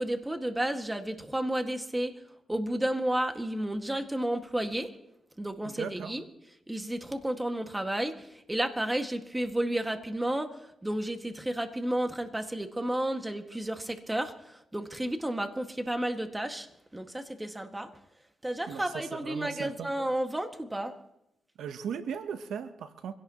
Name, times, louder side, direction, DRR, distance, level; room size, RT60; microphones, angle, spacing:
voice 1, 0.0-2.1 2.5-4.9 5.4-6.2 6.7-16.7 16.9-17.9 18.4-21.0, right 1 dB, 15° right, 5 dB, 1.8 m, -32 dB
voice 2, 5.6-6.2 18.7-19.9 21.6-23.1, right 7 dB, 85° right, 10 dB, 0.9 m, -37 dB
25.0 x 17.0 x 3.0 m, 0.82 s
cardioid pair, 75°, 0 cm